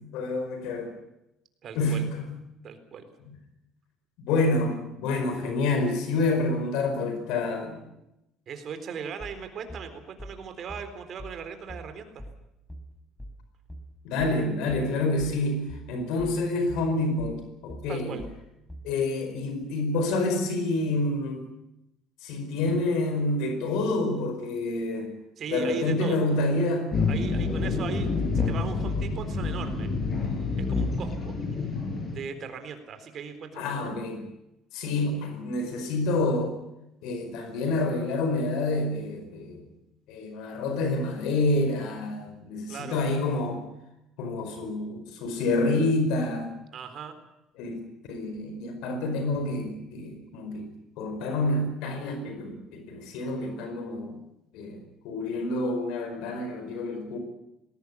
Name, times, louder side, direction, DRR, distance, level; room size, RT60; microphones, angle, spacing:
voice 1, 0.1-0.9 1.7-2.3 4.2-7.8 14.0-18.2 18.8-21.4 22.2-25.1 25.5-26.9 33.5-34.2 34.7-36.5 37.0-39.6 40.1-43.6 44.2-46.5 47.6-47.8 48.1-50.7 51.0-54.2 54.5-57.2, left 2 dB, 80° left, 6 dB, 4.9 m, -28 dB
voice 2, 1.6-2.0 2.6-3.1 8.5-12.2 17.9-18.2 25.4-26.2 27.1-29.9 30.2-31.7 32.1-33.9 42.7-43.0 46.7-47.1, right 6 dB, 45° right, 8 dB, 3.9 m, -38 dB
sound 1, 9.2-19.0, equal, 10° left, 4.2 m, -43 dB
sound 2, 26.9-32.2, left 4 dB, 30° left, 7.0 m, -28 dB
20.5 x 18.0 x 9.7 m, 0.87 s
cardioid pair, 115°, 0 cm